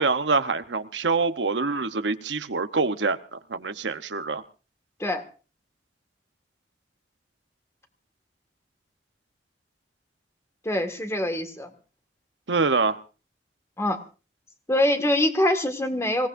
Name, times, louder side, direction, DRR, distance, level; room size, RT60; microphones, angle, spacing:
voice 1, 0.0-4.4 12.5-13.0, right 4 dB, 90° right, 0.9 m, -25 dB
voice 2, 10.7-11.7 13.8-14.0 14.7-16.3, left 1 dB, 15° left, 1.8 m, -24 dB
26.0 x 18.0 x 2.6 m
head